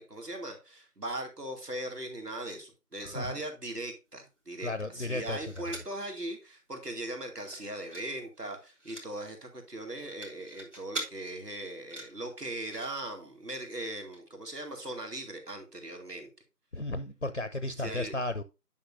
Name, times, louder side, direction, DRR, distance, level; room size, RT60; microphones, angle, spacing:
voice 1, 0.0-16.3 17.8-18.1, right 1 dB, 80° right, 2.7 m, -39 dB
voice 2, 3.0-3.4 4.6-5.5 16.7-18.4, left 2 dB, 50° left, 0.5 m, -34 dB
sound 1, 4.9-6.0 6.4-6.5 6.8-7.0 7.4-8.1 8.4-9.1 9.8-11.1 11.6-12.9 13.8-13.9 14.1-14.2, right 1 dB, 50° right, 2.4 m, -43 dB
10.0 x 5.7 x 2.6 m
figure-of-eight pair, 175°, 47 cm